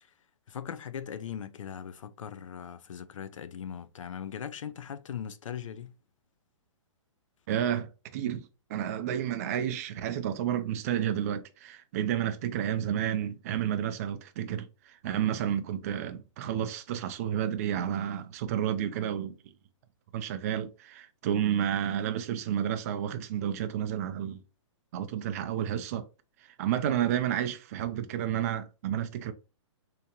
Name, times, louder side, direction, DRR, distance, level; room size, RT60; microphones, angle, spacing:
voice 1, 0.5-6.0, left 8 dB, 85° left, 0.5 m, -39 dB
voice 2, 7.5-19.4 20.1-24.4 24.9-26.1 26.4-29.3, right 10 dB, 30° right, 0.4 m, -31 dB
3.4 x 2.9 x 2.9 m
hypercardioid pair, 160°, 16 cm